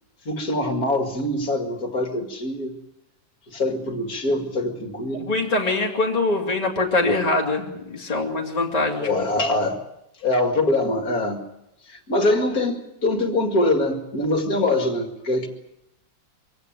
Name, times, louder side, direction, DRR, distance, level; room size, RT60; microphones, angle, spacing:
voice 1, 0.3-2.7 3.5-5.3 9.0-9.8 10.2-11.4 11.9-15.5, left 2 dB, 50° left, 5 dB, 2.6 m, -23 dB
voice 2, 5.1-9.1 9.5-9.6, left 2 dB, 20° left, -1 dB, 2.9 m, -23 dB
24.0 x 16.5 x 9.3 m, 0.84 s
omnidirectional pair, 2.0 m